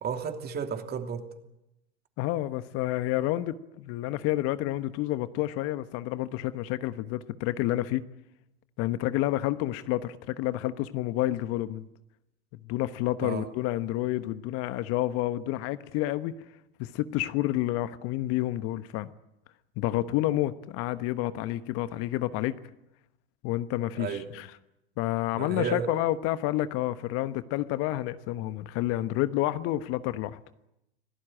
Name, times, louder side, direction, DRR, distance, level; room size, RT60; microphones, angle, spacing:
voice 1, 0.0-1.3 13.2-13.5 24.0-24.3 25.4-25.9, right 6 dB, 30° right, 3.0 m, -32 dB
voice 2, 2.2-8.0 8.8-11.9 12.7-16.4 16.8-19.1 19.8-22.6 23.4-24.5 25.0-30.4, left 15 dB, 50° left, 1.1 m, -29 dB
26.0 x 17.5 x 8.9 m
hypercardioid pair, 90°, 31 cm